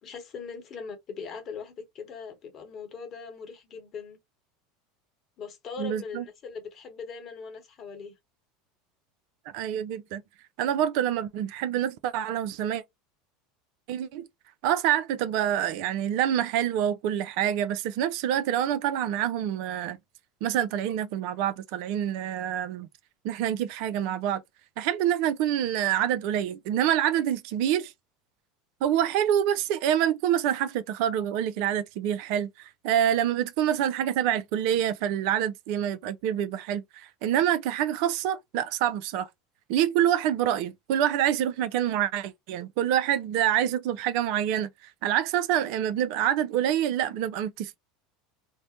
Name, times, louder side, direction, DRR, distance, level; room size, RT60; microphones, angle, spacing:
voice 1, 0.0-4.2 5.4-8.1, left 5 dB, 40° left, 1.0 m, -40 dB
voice 2, 5.8-6.2 9.5-10.2 10.6-12.8 13.9-14.3 14.6-20.0 20.4-22.9 23.2-24.4 24.8-27.9 28.8-39.3 39.7-47.8, right 10 dB, 60° right, 0.3 m, -26 dB
2.5 x 2.1 x 2.7 m
figure-of-eight pair, 75°, 0 cm